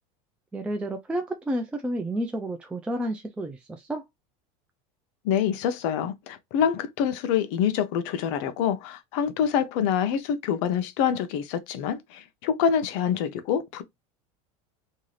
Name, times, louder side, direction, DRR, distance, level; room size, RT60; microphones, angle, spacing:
voice 1, 0.5-4.0, right 1 dB, 5° right, 0.3 m, -30 dB
voice 2, 5.2-13.8, left 8 dB, 65° left, 0.6 m, -26 dB
2.7 x 2.4 x 3.1 m
supercardioid pair, 130°, 18 cm